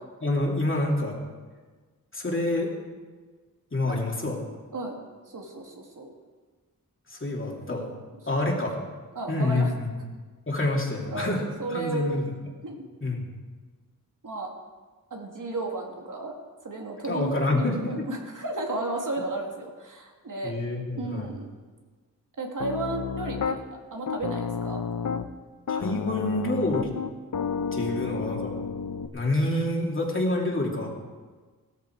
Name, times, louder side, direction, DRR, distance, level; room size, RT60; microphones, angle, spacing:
voice 1, 0.2-1.2 2.1-2.7 3.7-4.4 7.1-7.9 8.3-8.7 9.3-9.9 10.5-11.4 11.7-12.2 13.0-13.3 17.0-18.1 20.4-21.3 25.7-27.0 27.7-28.5 29.1-30.9, left 2 dB, 35° left, -1 dB, 2.8 m, -27 dB
voice 2, 5.3-6.1 8.3-8.4 9.2-9.7 11.1-12.2 12.6-12.8 14.2-14.5 15.1-16.4 16.6-20.5 20.9-21.5 22.4-23.6 23.9-24.8, right 2 dB, 65° right, 1 dB, 2.2 m, -33 dB
Piano, 22.6-23.6 24.1-25.3 25.7-29.1, left 6 dB, 60° left, 0.8 m, -31 dB
17.0 x 13.5 x 4.7 m, 1.4 s
wide cardioid pair, 115°, 34 cm